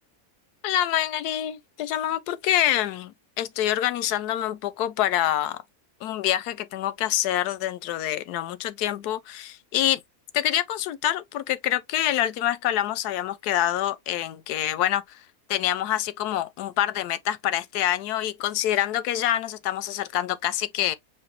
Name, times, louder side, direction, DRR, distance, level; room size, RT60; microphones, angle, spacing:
voice 1, 0.6-5.6 6.0-10.0 10.3-15.0 15.5-20.9, left 12 dB, 85° left, 1.1 m, -26 dB
4.9 x 2.1 x 4.5 m
omnidirectional pair, 1.7 m